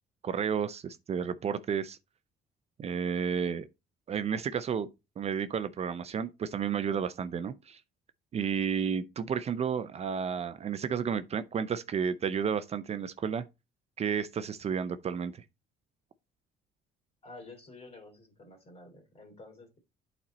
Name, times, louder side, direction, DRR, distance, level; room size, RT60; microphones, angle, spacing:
voice 1, 0.2-2.0 2.8-3.7 4.1-4.9 5.2-7.8 8.3-13.4 14.0-15.4, right 7 dB, 40° right, 0.6 m, -32 dB
voice 2, 17.2-19.8, left 2 dB, 35° left, 3.0 m, -50 dB
8.6 x 4.3 x 4.1 m
cardioid pair, 110°, 17 cm